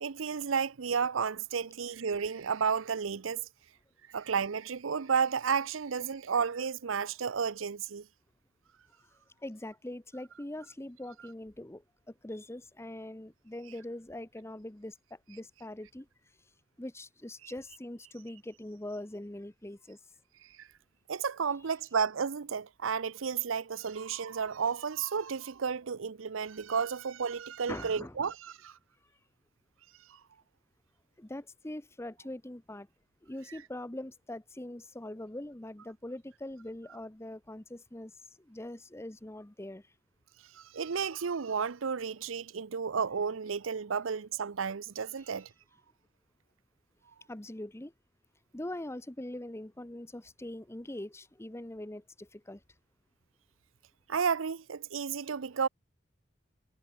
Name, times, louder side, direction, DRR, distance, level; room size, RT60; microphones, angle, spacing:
voice 1, 0.0-3.5 4.1-8.1 20.4-20.7 21.1-28.8 30.1-30.2 40.5-45.5 54.1-55.7, right 6 dB, 80° right, 0.6 m, -32 dB
voice 2, 9.4-16.1 16.8-20.0 27.7-28.3 31.2-32.9 33.2-38.1 38.4-39.9 47.3-47.9 48.5-52.6, left 1 dB, 15° left, 0.9 m, -42 dB
head